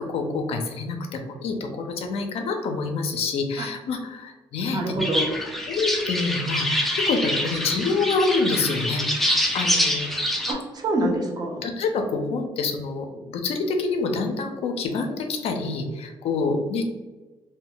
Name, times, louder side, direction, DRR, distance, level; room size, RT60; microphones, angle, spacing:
voice 1, 0.0-5.0 5.7-10.1 11.0-11.2 11.6-16.8, left 4 dB, 70° left, 5 dB, 0.4 m, -27 dB
voice 2, 4.7-5.3 10.5-11.6, right 2 dB, 40° right, 0 dB, 0.6 m, -26 dB
sound 1, 5.0-10.5, left 1 dB, ahead, 0.4 m, -25 dB
2.1 x 2.1 x 3.7 m, 1.2 s
cardioid pair, 95°, 11 cm